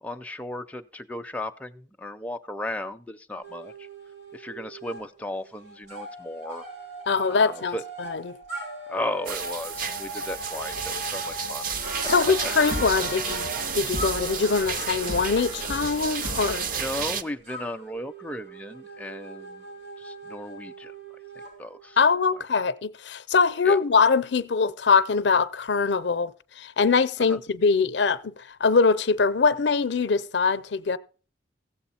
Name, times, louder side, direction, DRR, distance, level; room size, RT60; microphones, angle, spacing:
voice 1, 0.0-3.9 4.3-6.6 7.3-7.8 8.9-11.6 12.0-12.1 16.8-19.7 20.0-20.9 21.6-22.0 23.6-23.8 27.3-27.4, left 1 dB, 10° left, 0.5 m, -35 dB
sound 1, 3.4-5.0 5.3-22.4, right 1 dB, 75° right, 4.7 m, -40 dB
voice 2, 7.1-8.4 12.1-16.7 22.0-31.0, left 5 dB, 65° left, 0.5 m, -23 dB
sound 2, 9.3-17.2, right 6 dB, 50° right, 0.6 m, -32 dB
sound 3, 11.7-16.8, right 1 dB, 90° right, 3.3 m, -35 dB
15.0 x 7.7 x 4.2 m
head